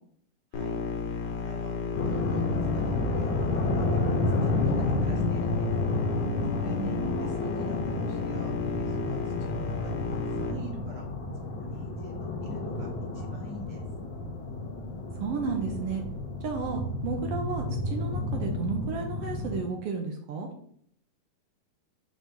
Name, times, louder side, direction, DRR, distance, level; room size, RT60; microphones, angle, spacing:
sound 1, 0.5-10.5, left 5 dB, 85° left, 2.4 m, -33 dB
voice 1, 1.2-5.7 6.5-11.1 11.4-12.9 13.1-13.8, right 2 dB, 50° right, 0 dB, 1.4 m, -45 dB
sound 2, 1.9-19.6, left 2 dB, 55° left, 1.6 m, -31 dB
voice 2, 6.8-7.3 15.2-16.0 16.4-20.5, right 5 dB, 70° right, 3 dB, 1.6 m, -33 dB
6.3 x 3.0 x 5.3 m, 0.64 s
omnidirectional pair, 3.3 m